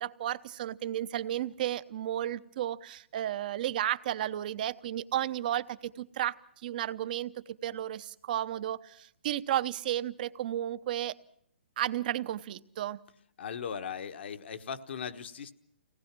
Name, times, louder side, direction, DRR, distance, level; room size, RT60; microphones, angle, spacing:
voice 1, 0.0-6.4 6.6-7.3 7.6-11.1 11.8-13.0, right 12 dB, 45° right, 15 dB, 0.8 m, -33 dB
voice 2, 13.4-15.5, left 7 dB, 60° left, 9 dB, 1.3 m, -38 dB
24.5 x 18.0 x 6.0 m, 0.68 s
hypercardioid pair, 150°, 7 cm